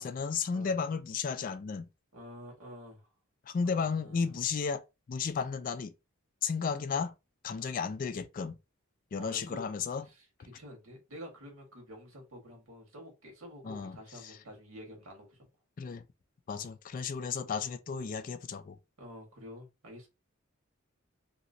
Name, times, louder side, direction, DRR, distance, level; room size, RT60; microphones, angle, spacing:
voice 1, 0.0-1.9 3.5-4.8 5.1-5.9 6.4-7.1 7.4-8.6 9.1-10.1 13.6-14.4 15.8-16.0 16.5-18.8, left 5 dB, 40° left, 0.3 m, -33 dB
voice 2, 2.1-3.1 3.6-4.5 7.6-7.8 9.2-9.6 10.0-15.5 16.5-16.7 19.0-20.1, equal, 75° right, 1.5 m, -49 dB
2.9 x 2.8 x 2.6 m
head